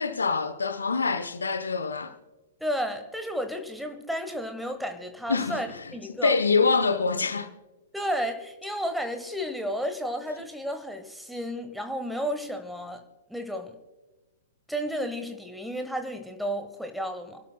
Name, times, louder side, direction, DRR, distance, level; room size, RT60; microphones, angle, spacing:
voice 1, 0.0-2.1 5.3-5.6 6.1-7.5, left 4 dB, 70° left, 0.9 m, -25 dB
voice 2, 2.6-6.3 7.9-13.0 13.3-13.7 14.7-17.4, equal, ahead, 1.2 m, -32 dB
27.5 x 12.0 x 2.3 m
figure-of-eight pair, 105°, 0 cm